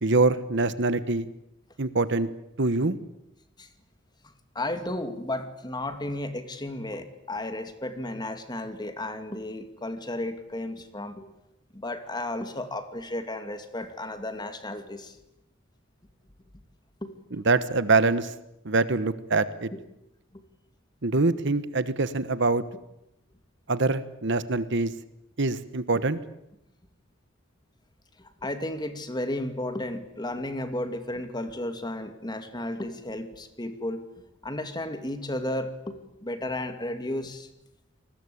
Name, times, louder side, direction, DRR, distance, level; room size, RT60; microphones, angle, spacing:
voice 1, 0.0-1.3 1.8-2.3 2.6-3.0 17.4-18.3 18.6-19.7 21.0-22.6 23.7-24.9 25.4-26.2, right 3 dB, 60° right, 14 dB, 1.2 m, -24 dB
voice 2, 4.5-11.3 11.7-15.2 17.0-17.1 19.7-19.8 20.3-20.4 25.9-26.0 28.2-34.1 34.4-37.5, left 1 dB, 20° left, 8 dB, 2.4 m, -33 dB
28.5 x 20.5 x 8.6 m, 0.85 s
head